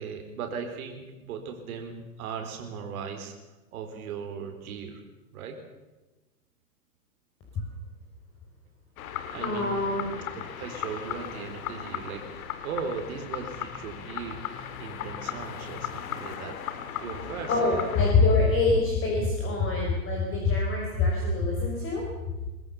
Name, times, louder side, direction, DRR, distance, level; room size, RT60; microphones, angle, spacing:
voice 1, 0.0-3.3 3.7-5.0 5.3-5.6 9.3-9.7 10.6-17.9 18.2-18.4, right 6 dB, 60° right, 4 dB, 4.2 m, -38 dB
sound 1, 9.0-18.1, left 9 dB, 60° left, 2.6 m, -37 dB
voice 2, 9.4-10.1 17.5-22.0, left 3 dB, 25° left, -1 dB, 5.0 m, -25 dB
23.5 x 19.5 x 7.1 m, 1.1 s
hypercardioid pair, 120°, 49 cm